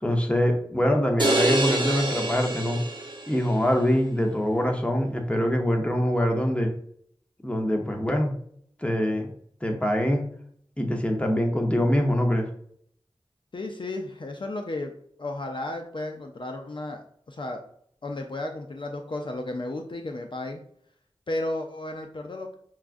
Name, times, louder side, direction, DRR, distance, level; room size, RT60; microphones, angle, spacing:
voice 1, 0.0-2.8 3.3-6.7 7.4-8.3 8.8-9.3 9.6-10.2 10.8-12.5, equal, 10° left, 2 dB, 0.8 m, -24 dB
sound 1, 1.2-3.5, right 2 dB, 50° right, 0.9 m, -26 dB
voice 2, 13.5-14.9 15.2-17.6 18.0-20.6 21.3-22.6, left 2 dB, 55° left, 3 dB, 0.5 m, -33 dB
5.8 x 2.4 x 2.5 m, 0.64 s
wide cardioid pair, 45°, 10 cm